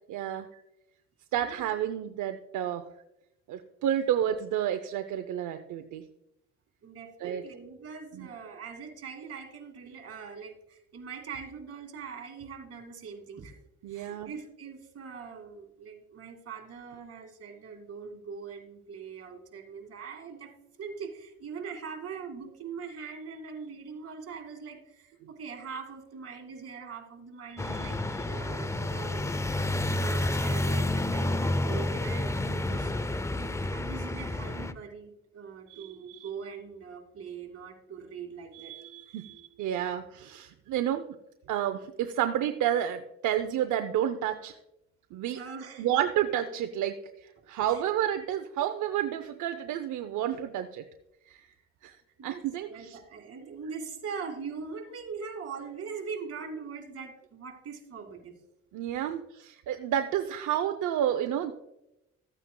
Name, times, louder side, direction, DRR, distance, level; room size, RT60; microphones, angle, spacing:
voice 1, 0.1-0.5 1.3-2.9 3.5-6.0 7.2-7.4 8.1-8.3 13.8-14.3 39.1-39.2 39.6-41.0 41.5-44.5 45.1-45.4 45.8-50.9 51.3-51.5 51.8-52.0 52.2-53.0 58.7-61.5, right 10 dB, 80° right, 8 dB, 0.6 m, -30 dB
voice 2, 6.8-13.5 13.9-20.5 20.8-39.8 45.3-45.9 47.7-47.8 52.2-58.4, right 5 dB, 50° right, 2 dB, 2.2 m, -42 dB
sound 1, 27.6-34.7, left 1 dB, 10° left, 0.4 m, -30 dB
14.0 x 9.0 x 2.2 m, 0.87 s
cardioid pair, 90°, 30 cm